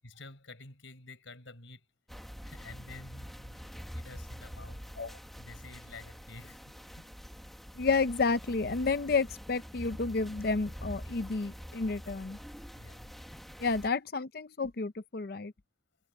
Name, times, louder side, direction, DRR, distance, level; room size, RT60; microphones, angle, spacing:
voice 1, 0.0-1.9 2.4-4.9 5.4-7.1 12.8-13.1, left 3 dB, 90° left, 5.6 m, -50 dB
sound 1, 2.1-13.9, equal, ahead, 1.5 m, -46 dB
voice 2, 7.8-12.4 13.6-15.5, left 4 dB, 50° left, 0.6 m, -31 dB
head